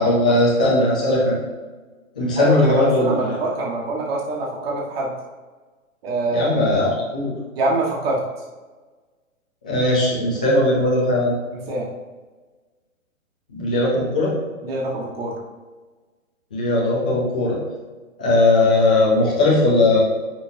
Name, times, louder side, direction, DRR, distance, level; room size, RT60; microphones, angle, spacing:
voice 1, 0.0-1.4 2.2-3.4 6.3-7.3 9.6-11.3 13.5-14.3 16.5-17.6 18.2-20.0, left 2 dB, 5° left, -6 dB, 0.3 m, -18 dB
voice 2, 2.4-5.1 6.0-6.5 7.6-8.2 11.5-11.9 14.6-15.4, right 2 dB, 45° right, -3 dB, 1.8 m, -24 dB
9.3 x 6.0 x 2.8 m, 1.3 s
hypercardioid pair, 140°, 41 cm